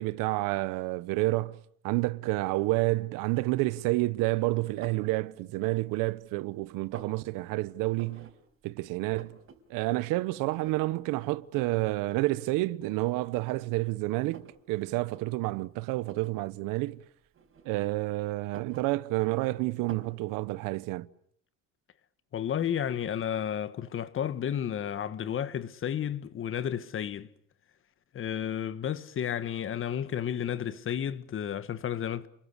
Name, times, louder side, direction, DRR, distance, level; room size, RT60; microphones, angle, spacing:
voice 1, 0.0-1.6 1.8-8.3 8.6-9.4 9.7-17.0 17.6-21.1, right 20 dB, 90° right, 1.1 m, -29 dB
sound 1, 4.8-5.1 5.7-6.3 6.6-7.2 7.9-8.3 8.7-8.8 8.9-9.6 9.9-10.0 10.6-11.0 11.5-11.8 12.7-12.8 13.3-14.6 15.0-15.2 16.0-16.4 17.3-18.0 18.4-19.4 19.9-20.2, right 6 dB, 40° right, 4.9 m, -49 dB
voice 2, 22.3-27.3 28.1-32.3, left 9 dB, 40° left, 1.4 m, -32 dB
30.0 x 22.0 x 8.3 m
cardioid pair, 130°, 32 cm